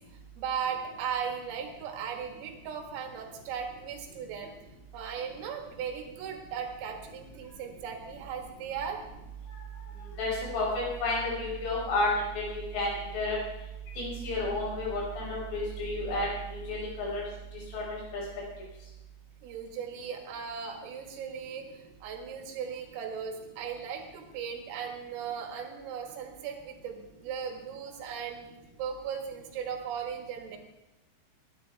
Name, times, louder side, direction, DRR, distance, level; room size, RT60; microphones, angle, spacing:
voice 1, 0.1-4.5 4.9-9.0 19.4-30.6, right 7 dB, 85° right, 3 dB, 4.3 m, -37 dB
voice 2, 10.2-12.1 12.4-13.4 14.0-17.2 17.7-17.8 18.1-18.2, left 2 dB, 70° left, -5 dB, 7.8 m, -31 dB
22.5 x 10.0 x 3.4 m, 0.95 s
omnidirectional pair, 5.8 m